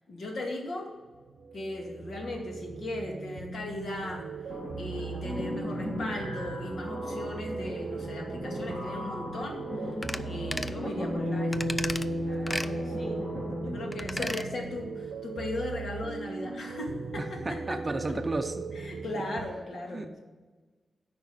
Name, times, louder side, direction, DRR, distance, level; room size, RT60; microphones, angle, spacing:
voice 1, 0.1-0.9 1.5-4.3 4.8-9.9 10.2-11.7 12.2-13.2 13.6-18.2 18.7-20.2, left 1 dB, 65° left, 0 dB, 2.1 m, -37 dB
sound 1, 1.1-19.5, right 5 dB, 80° right, 0.7 m, -39 dB
sound 2, 4.5-14.0, left 1 dB, 35° left, 2.5 m, -35 dB
sound 3, 10.0-10.2 10.5-10.8 11.5-12.1 12.5-12.7 13.9-14.5 14.8-14.9, left 1 dB, 10° left, 0.4 m, -34 dB
voice 2, 14.2-14.5 17.2-18.7 19.9-20.2, right 2 dB, 25° right, 7 dB, 0.6 m, -34 dB
9.0 x 5.3 x 7.3 m, 1.3 s
wide cardioid pair, 140°, 0 cm